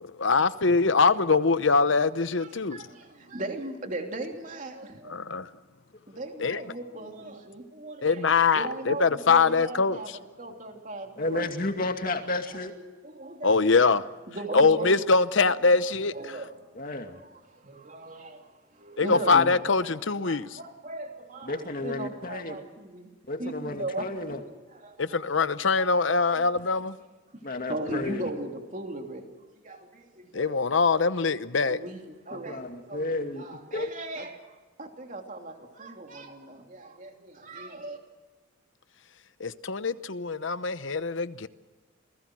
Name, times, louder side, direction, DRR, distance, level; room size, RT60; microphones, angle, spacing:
voice 1, 0.0-2.8 5.1-5.5 6.4-6.6 8.0-10.2 13.4-14.0 14.5-16.1 19.0-20.6 25.0-26.9 30.3-31.8 39.4-41.5, left 4 dB, 70° left, 0.9 m, -23 dB
voice 2, 2.4-5.4 6.1-8.3 8.5-10.1 10.4-11.5 13.0-13.8 14.3-15.0 16.1-16.6 16.9-23.1 23.4-24.4 24.7-25.4 25.8-26.2 27.7-29.2 29.6-30.6 31.7-32.0 32.3-33.1 33.4-38.0, right 2 dB, 40° right, 3.1 m, -38 dB
voice 3, 11.2-12.7 16.7-17.2 19.1-19.5 21.4-22.6 23.3-24.4 27.4-28.3 32.3-33.9, left 2 dB, 45° left, 2.4 m, -32 dB
28.5 x 19.5 x 6.3 m
head